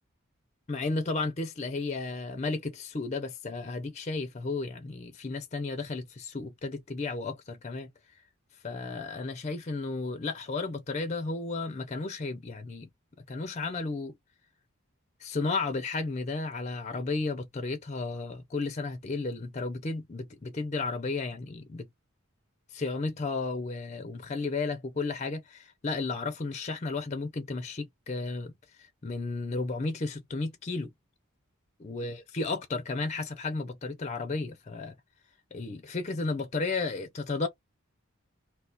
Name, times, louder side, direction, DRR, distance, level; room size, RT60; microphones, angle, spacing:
voice 1, 0.7-7.9 8.6-12.9 13.2-14.2 15.2-21.9 22.7-28.5 29.0-30.9 31.8-34.9 35.5-37.5, left 3 dB, 30° left, 0.5 m, -33 dB
2.4 x 2.3 x 3.9 m
head